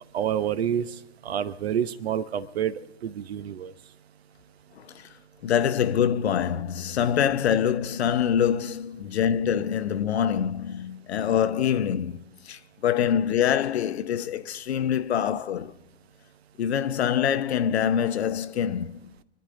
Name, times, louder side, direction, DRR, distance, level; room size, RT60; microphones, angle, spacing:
voice 1, 0.1-0.9 1.2-3.7, right 9 dB, 70° right, 1.0 m, -28 dB
voice 2, 4.8-5.1 5.4-15.7 16.6-19.1, left 9 dB, 75° left, 0.8 m, -25 dB
26.0 x 10.0 x 3.8 m
hypercardioid pair, 115°, 32 cm